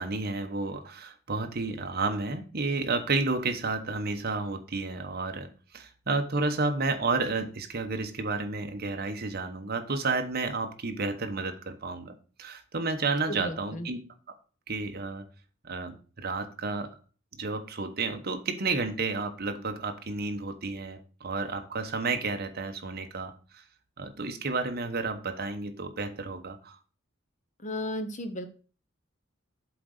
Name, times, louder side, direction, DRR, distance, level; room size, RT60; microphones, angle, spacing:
voice 1, 0.0-14.0 14.7-15.2 15.6-17.0 17.3-23.6 24.0-26.8, right 3 dB, 50° right, 6 dB, 1.1 m, -31 dB
voice 2, 13.3-13.9 27.6-28.5, left 1 dB, 35° left, 8 dB, 1.0 m, -34 dB
7.7 x 4.0 x 6.5 m, 0.37 s
head